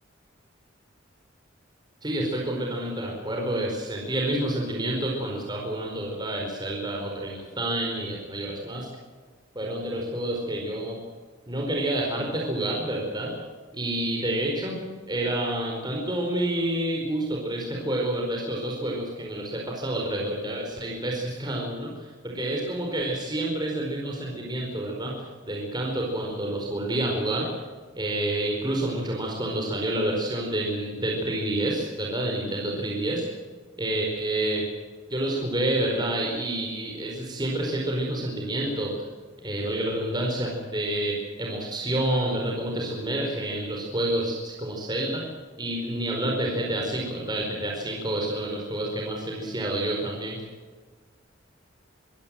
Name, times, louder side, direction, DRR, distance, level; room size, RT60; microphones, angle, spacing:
voice 1, 2.0-8.9 9.5-11.0 11.5-13.3 13.7-14.8 15.1-27.5 27.9-33.2 33.8-34.6 35.1-39.1 39.4-45.2 45.6-50.4, right 1 dB, 20° right, -1 dB, 4.7 m, -28 dB
25.0 x 16.5 x 7.7 m, 1.5 s
head